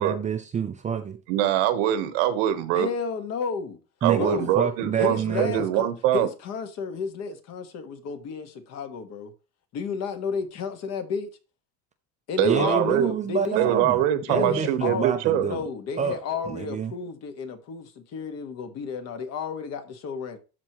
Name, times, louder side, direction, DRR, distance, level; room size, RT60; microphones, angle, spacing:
voice 1, 0.0-1.2 4.0-5.6 12.4-14.0 14.3-15.6 16.0-16.2 16.5-16.9, right 7 dB, 20° right, 0.5 m, -28 dB
voice 2, 1.3-2.9 4.0-6.3 12.4-13.1 13.5-15.5, right 11 dB, 85° right, 1.3 m, -23 dB
voice 3, 2.7-3.8 4.2-4.5 5.0-9.3 9.7-11.3 12.3-13.8 14.3-15.1 15.3-20.4, left 5 dB, 50° left, 1.5 m, -32 dB
12.5 x 4.7 x 3.0 m
cardioid pair, 155°, 35 cm